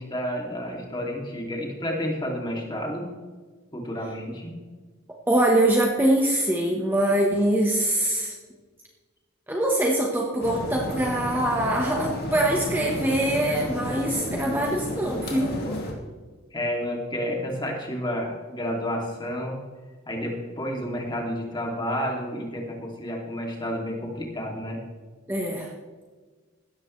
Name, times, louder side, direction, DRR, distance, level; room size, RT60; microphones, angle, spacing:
voice 1, 0.0-3.1 3.7-4.5 16.5-19.6 20.1-24.8, equal, 20° left, 0 dB, 2.7 m, -30 dB
voice 2, 5.3-8.3 9.5-15.7 25.3-25.7, right 1 dB, 10° right, -2 dB, 1.2 m, -23 dB
sound 1, 10.4-15.9, left 1 dB, 45° left, 2.7 m, -32 dB
17.0 x 13.0 x 3.3 m, 1.4 s
head